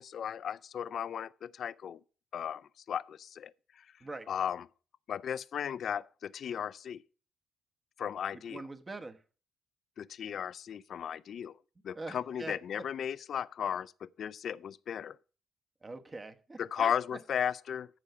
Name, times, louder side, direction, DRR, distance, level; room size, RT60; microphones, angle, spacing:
voice 1, 0.0-2.0 2.3-3.5 4.3-4.7 5.1-7.0 8.0-8.7 10.0-11.5 11.8-15.2 16.6-17.9, left 8 dB, 60° left, 0.5 m, -35 dB
voice 2, 8.5-9.2 11.9-12.5 15.8-16.9, right 3 dB, 25° right, 1.2 m, -43 dB
14.0 x 4.8 x 6.8 m
cardioid pair, 90°, 0 cm